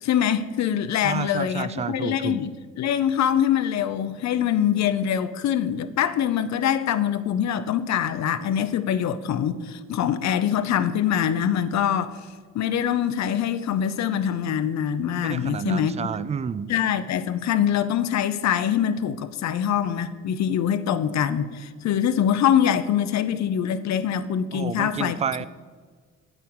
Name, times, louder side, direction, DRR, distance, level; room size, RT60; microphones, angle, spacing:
voice 1, 0.0-2.5 2.8-12.2 12.5-15.9 16.7-25.2, left 9 dB, 65° left, 0.6 m, -24 dB
voice 2, 1.0-2.4 15.2-16.7 24.5-25.5, right 7 dB, 25° right, 0.3 m, -30 dB
8.7 x 8.0 x 4.6 m
cardioid pair, 90°, 30 cm